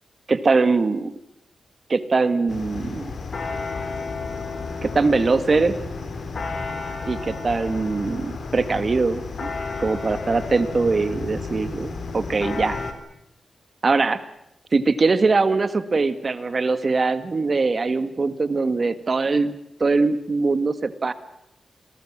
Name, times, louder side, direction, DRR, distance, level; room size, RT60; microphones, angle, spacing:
voice 1, 0.3-1.1 1.9-3.1 4.8-5.8 7.1-9.5 9.8-12.8 13.8-14.2 14.7-19.5 19.8-21.1, right 3 dB, 40° right, 12 dB, 1.8 m, -22 dB
sound 1, 2.5-12.9, left 4 dB, 55° left, 3.6 m, -32 dB
28.0 x 19.5 x 7.5 m, 0.81 s
wide cardioid pair, 120°, 0 cm